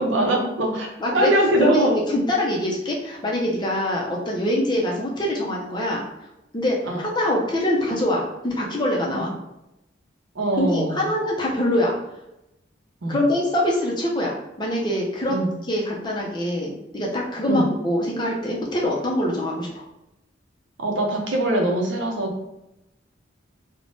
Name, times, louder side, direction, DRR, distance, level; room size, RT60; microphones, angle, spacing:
voice 1, 0.0-2.0 6.9-7.0 9.1-9.3 10.3-11.0 13.0-13.2 15.3-15.5 17.5-17.7 20.8-22.3, right 1 dB, 75° right, 1 dB, 0.6 m, -22 dB
voice 2, 1.6-6.0 6.5-9.3 10.6-12.0 13.1-15.3 15.7-19.7, left 1 dB, 25° left, -2 dB, 0.5 m, -24 dB
3.3 x 2.1 x 2.6 m, 0.89 s
head